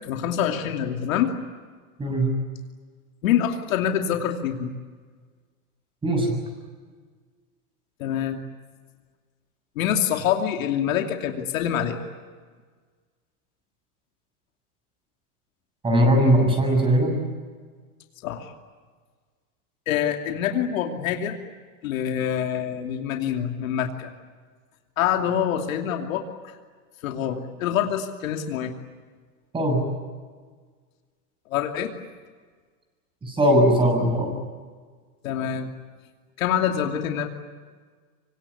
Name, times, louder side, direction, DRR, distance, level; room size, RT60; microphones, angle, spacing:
voice 1, 0.0-1.3 3.2-4.7 8.0-8.4 9.8-12.0 18.2-18.5 19.9-21.4 21.8-24.1 25.0-26.5 27.0-28.7 31.5-31.9 35.2-35.7 36.4-37.3, left 9 dB, 65° left, 4 dB, 2.8 m, -25 dB
voice 2, 2.0-2.3 6.0-6.4 15.8-17.2 29.5-29.8 33.2-34.3, right 1 dB, 10° right, 3 dB, 7.2 m, -20 dB
26.0 x 25.5 x 8.5 m, 1.5 s
supercardioid pair, 145°, 44 cm